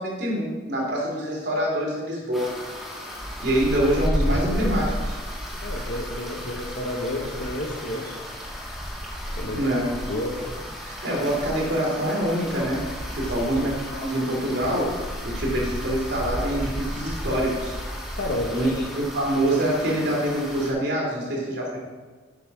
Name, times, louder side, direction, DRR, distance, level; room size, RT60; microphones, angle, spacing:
voice 1, 0.0-2.5 3.4-5.2 9.5-9.9 10.9-14.9 15.2-17.8 18.5-18.7 19.0-21.8, right 1 dB, 70° right, -3 dB, 2.9 m, -25 dB
sound 1, 2.3-20.7, equal, ahead, 1.4 m, -32 dB
voice 2, 5.6-8.1 9.4-9.6 10.1-10.4 13.2-13.6 18.1-18.8, left 1 dB, 65° left, -2 dB, 1.1 m, -30 dB
8.4 x 5.6 x 6.0 m, 1.4 s
head